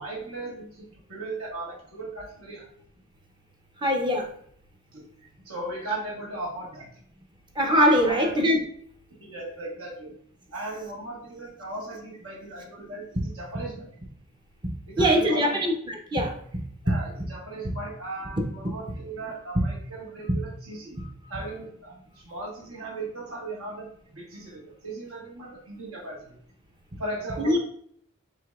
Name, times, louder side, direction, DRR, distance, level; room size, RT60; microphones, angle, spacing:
voice 1, 0.0-2.6 4.9-5.0 5.4-6.9 8.0-8.4 9.1-10.1 10.5-13.9 14.9-15.7 16.8-21.0 21.3-26.4 27.0-27.6, right 2 dB, 80° right, -3 dB, 1.5 m, -37 dB
voice 2, 3.8-4.3 7.6-8.6 14.6-17.0 17.6-17.7 18.4-18.5 19.6-19.7 20.3-20.4 27.4-27.6, equal, 20° right, 2 dB, 0.5 m, -23 dB
4.9 x 3.4 x 2.3 m, 0.63 s
head